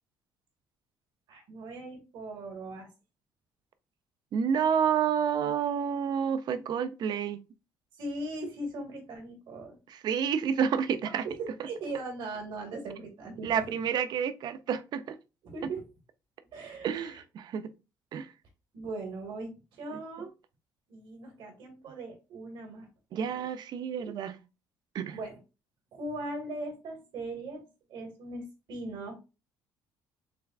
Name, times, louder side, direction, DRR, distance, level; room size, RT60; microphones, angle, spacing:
voice 1, 1.3-2.9 7.9-9.8 11.2-13.8 15.4-15.9 16.5-17.2 18.7-20.3 20.9-23.5 24.0-24.1 25.1-25.4 25.9-29.2, right 2 dB, 70° right, 1.9 m, -39 dB
voice 2, 4.3-7.4 9.9-11.3 13.4-15.2 16.8-17.7 18.1-18.3 23.1-24.3 24.9-25.2, right 7 dB, 55° right, 0.5 m, -29 dB
6.6 x 2.3 x 2.4 m
cardioid pair, 105°, 8 cm